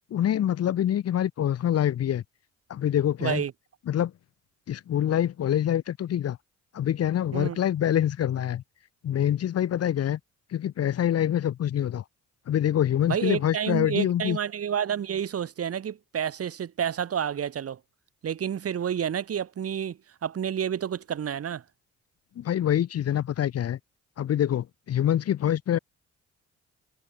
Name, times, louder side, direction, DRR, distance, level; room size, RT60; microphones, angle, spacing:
voice 1, 0.1-2.2 2.7-3.4 3.9-4.1 4.7-6.4 6.7-8.6 9.0-10.2 10.5-12.0 12.5-14.4 22.4-23.8 24.2-25.8, left 10 dB, 55° left, 0.9 m, -25 dB
voice 2, 3.2-3.5 7.3-7.6 13.1-17.8 18.2-21.6, right 8 dB, 50° right, 1.8 m, -29 dB
cardioid pair, 90°, 30 cm